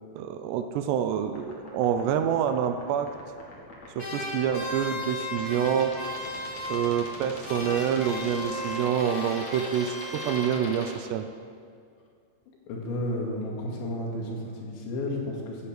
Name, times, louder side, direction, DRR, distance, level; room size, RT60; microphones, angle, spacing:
voice 1, 0.1-3.2 4.0-6.0 6.7-11.3, right 8 dB, 80° right, 8 dB, 2.7 m, -27 dB
sound 1, 1.3-10.9, left 2 dB, 45° left, 2.9 m, -42 dB
sound 2, 4.0-7.2 7.4-10.8, left 1 dB, 25° left, 2.7 m, -36 dB
voice 2, 12.7-15.7, left 1 dB, 90° left, -1 dB, 4.6 m, -32 dB
14.0 x 9.8 x 8.1 m, 2.2 s
omnidirectional pair, 5.1 m